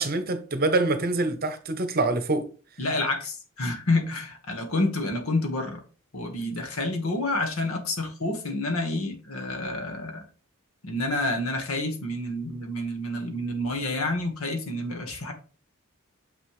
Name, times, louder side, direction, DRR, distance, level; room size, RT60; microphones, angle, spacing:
voice 1, 0.0-2.5, right 2 dB, 45° right, 0.9 m, -25 dB
voice 2, 2.8-5.8 6.1-10.2 10.8-15.3, left 2 dB, 75° left, 1.7 m, -28 dB
6.7 x 6.1 x 3.2 m
head